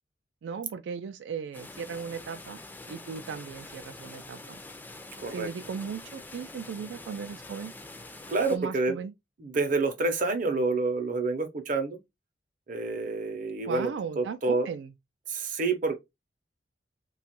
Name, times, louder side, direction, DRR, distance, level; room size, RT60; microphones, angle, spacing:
voice 1, 0.4-2.6 2.9-4.6 5.3-7.7 8.5-9.1 13.7-14.9, right 6 dB, 90° right, 0.3 m, -37 dB
sound 1, 1.5-8.6, left 2 dB, 10° left, 0.4 m, -45 dB
voice 2, 8.3-8.9 9.4-12.0 12.7-13.9 14.2-14.7 15.3-16.0, right 3 dB, 50° right, 0.6 m, -28 dB
2.9 x 2.3 x 2.8 m
head